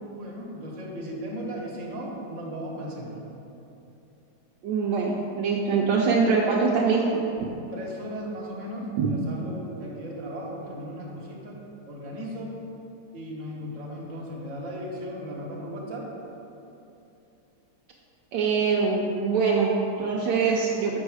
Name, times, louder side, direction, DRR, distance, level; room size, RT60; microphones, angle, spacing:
voice 1, 0.1-3.2 7.7-11.6 11.9-12.6 13.1-16.1, equal, 45° right, -3 dB, 1.4 m, -36 dB
voice 2, 4.6-7.2 9.0-9.1 18.3-21.0, right 5 dB, 75° right, -2 dB, 1.3 m, -23 dB
7.2 x 5.4 x 4.8 m, 2.9 s
omnidirectional pair, 2.0 m